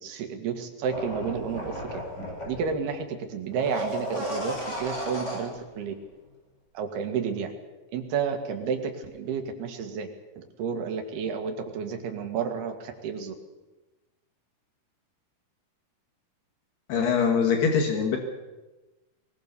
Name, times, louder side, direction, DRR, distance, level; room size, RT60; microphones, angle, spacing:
voice 1, 0.0-2.0 2.5-5.9 6.7-7.5 7.9-10.1 10.4-13.3, right 6 dB, 70° right, 5 dB, 3.9 m, -31 dB
sound 1, 0.9-2.8 3.5-5.6 5.9-6.0, equal, 15° left, 5.9 m, -34 dB
voice 2, 16.9-18.2, left 6 dB, 75° left, 3 dB, 3.9 m, -23 dB
22.5 x 19.5 x 6.9 m, 1.1 s
omnidirectional pair, 4.7 m